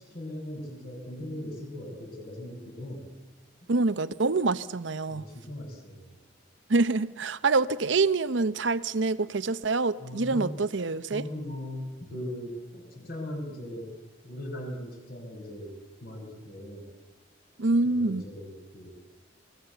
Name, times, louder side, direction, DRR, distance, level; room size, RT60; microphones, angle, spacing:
voice 1, 0.0-3.1 3.6-3.7 5.1-6.2 10.0-10.5 11.1-13.9 14.2-15.7 16.0-16.9 17.9-18.9, left 1 dB, 50° left, 5.8 m, -39 dB
voice 2, 3.7-5.3 6.7-11.3 17.6-18.2, right 3 dB, 75° right, 0.8 m, -26 dB
29.0 x 19.5 x 8.0 m
head